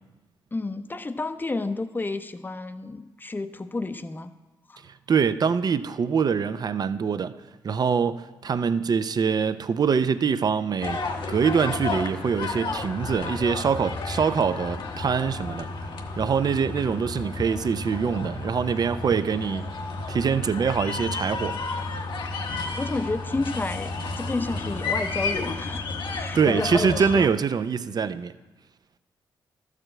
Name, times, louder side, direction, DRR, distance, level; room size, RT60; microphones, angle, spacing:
voice 1, 0.5-4.3 4.7-4.8 22.7-27.3, left 3 dB, 20° left, 0.7 m, -31 dB
voice 2, 5.1-7.4 7.6-11.0 11.3-15.7 16.2-19.7 20.1-21.6 26.3-28.3, right 6 dB, 50° right, 0.5 m, -24 dB
sound 1, 10.8-27.3, left 3 dB, 70° left, 1.0 m, -32 dB
12.5 x 4.9 x 7.6 m
cardioid pair, 65°, 9 cm